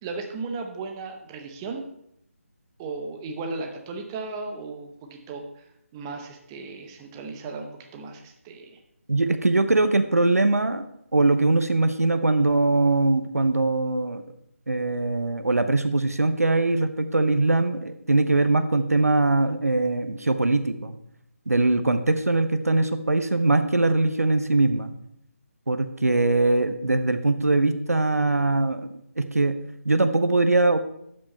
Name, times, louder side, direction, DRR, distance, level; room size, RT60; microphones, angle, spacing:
voice 1, 0.0-1.8 2.8-8.8, right 3 dB, 15° right, 3 dB, 0.9 m, -36 dB
voice 2, 9.1-10.9 11.1-14.2 14.7-21.0 21.5-24.9 25.7-29.6 29.8-30.8, right 2 dB, 85° right, 9 dB, 0.8 m, -22 dB
12.0 x 5.4 x 4.4 m, 0.76 s
figure-of-eight pair, 155°, 8 cm